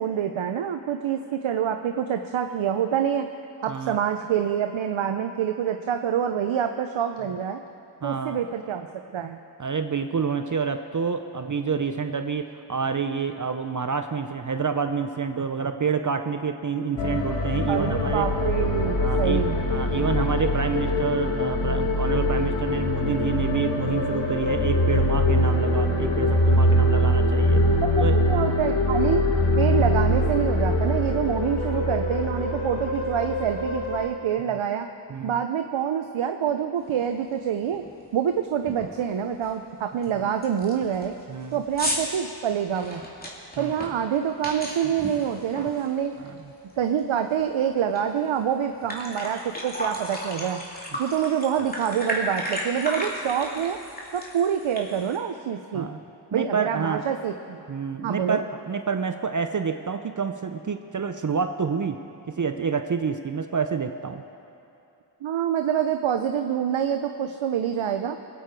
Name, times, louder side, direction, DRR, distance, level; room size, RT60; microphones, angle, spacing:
voice 1, 0.0-3.3 3.6-7.6 8.0-8.9 9.1-9.4 17.7-19.6 27.8-29.2 29.6-34.9 35.2-37.8 38.1-41.1 41.5-43.0 43.6-46.1 46.8-50.6 51.0-53.8 54.1-55.9 56.3-57.6 58.0-58.4 65.2-68.2, right 8 dB, 90° right, 6 dB, 0.6 m, -26 dB
voice 2, 8.0-8.4 9.6-18.3 19.0-19.4 19.7-27.6 28.0-28.2 35.1-35.4 40.1-40.3 41.3-41.6 43.6-43.7 46.2-46.4 55.7-56.0 56.3-57.0 57.7-62.0 62.4-64.2, right 5 dB, 40° right, 7 dB, 0.6 m, -28 dB
sound 1, 17.0-34.1, left 1 dB, 75° left, 1.6 m, -23 dB
sound 2, 37.0-37.1 37.6-37.9 38.2-38.3 38.7-39.0 39.4-39.5 40.0-40.1 40.4-46.4 46.7-48.0 48.4-48.5 48.7-55.2, equal, 20° left, 2.8 m, -34 dB
21.0 x 8.6 x 4.6 m, 2.7 s
cardioid pair, 40°, 46 cm